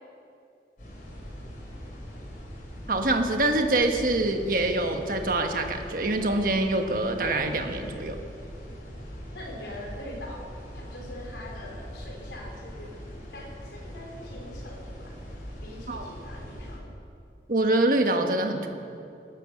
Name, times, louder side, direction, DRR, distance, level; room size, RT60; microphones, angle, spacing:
sound 1, 0.8-16.8, equal, 50° left, 4.3 m, -41 dB
voice 1, 2.9-8.2 15.9-16.1 17.5-18.7, right 2 dB, 50° right, 4 dB, 1.3 m, -25 dB
voice 2, 9.3-13.0 13.3-15.2 15.6-16.9, left 1 dB, 85° left, 0 dB, 3.5 m, -43 dB
19.5 x 9.7 x 6.5 m, 2.6 s
head